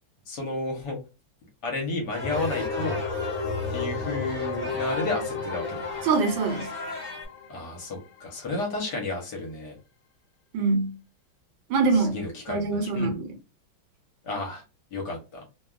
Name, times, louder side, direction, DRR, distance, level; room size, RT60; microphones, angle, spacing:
voice 1, 0.3-1.0 1.6-3.0 3.7-5.9 7.5-9.8 11.9-13.1 14.2-14.6 14.9-15.4, left 2 dB, 60° left, 1.4 m, -32 dB
sound 1, 2.1-7.2, left 2 dB, 10° right, 0.6 m, -38 dB
sound 2, 2.2-7.9, left 4 dB, 85° left, 1.4 m, -32 dB
voice 2, 6.0-6.7 10.5-11.0 11.7-12.2 12.5-13.3, right 4 dB, 75° right, 1.4 m, -24 dB
3.3 x 2.3 x 2.3 m
omnidirectional pair, 2.2 m